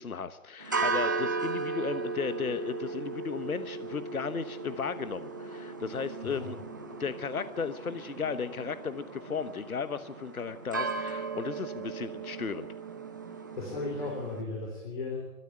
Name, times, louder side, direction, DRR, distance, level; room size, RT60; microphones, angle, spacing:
voice 1, 0.0-6.6 7.0-12.7, left 6 dB, 75° left, 12 dB, 1.2 m, -35 dB
sound 1, 0.6-14.4, right 4 dB, 15° right, 0.8 m, -36 dB
voice 2, 13.5-15.3, left 3 dB, 35° left, 0 dB, 4.2 m, -36 dB
21.5 x 14.0 x 10.0 m, 1.0 s
hypercardioid pair, 165°, 43 cm